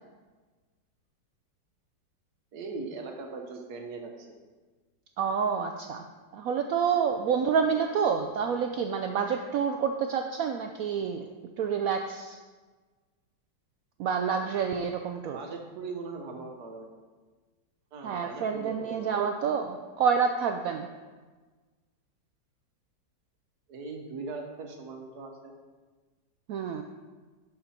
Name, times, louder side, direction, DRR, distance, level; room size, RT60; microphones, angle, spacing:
voice 1, 2.5-4.4 15.3-16.9 17.9-19.3 23.7-25.5, right 3 dB, 60° right, 3 dB, 1.5 m, -40 dB
voice 2, 5.2-6.0 6.3-12.4 14.0-15.4 18.0-20.9 26.5-26.8, right 6 dB, 80° right, 5 dB, 0.7 m, -28 dB
11.5 x 5.1 x 4.3 m, 1.4 s
omnidirectional pair, 2.0 m